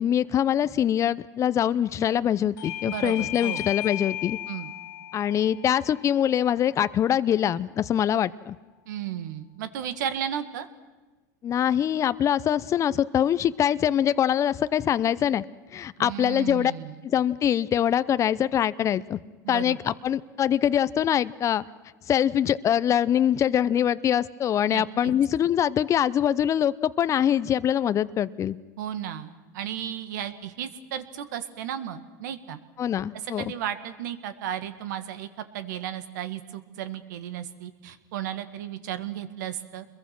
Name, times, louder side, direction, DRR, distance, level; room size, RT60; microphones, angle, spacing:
voice 1, 0.0-4.4 5.1-8.6 11.4-15.4 15.7-16.7 17.0-19.2 19.5-21.6 22.1-28.6 32.8-33.4, left 10 dB, 30° left, 15 dB, 0.7 m, -24 dB
Bell / Doorbell, 2.6-7.7, left 14 dB, 85° left, 2.1 m, -37 dB
voice 2, 2.9-3.7 4.5-4.7 8.9-10.7 16.0-17.0 19.4-19.8 24.7-25.1 28.8-32.6 33.2-35.3 35.5-39.9, right 10 dB, 80° right, 11 dB, 1.9 m, -34 dB
27.5 x 22.0 x 6.1 m, 1.3 s
supercardioid pair, 110°, 10 cm